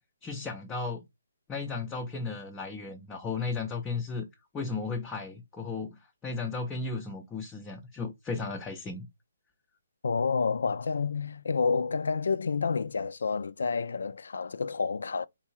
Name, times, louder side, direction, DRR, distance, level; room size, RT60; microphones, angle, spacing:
voice 1, 0.2-1.1 1.5-4.3 4.5-9.1, left 4 dB, 10° left, 0.5 m, -35 dB
voice 2, 10.0-15.3, left 5 dB, 75° left, 0.3 m, -29 dB
3.8 x 2.5 x 4.2 m
hypercardioid pair, 155°, 0 cm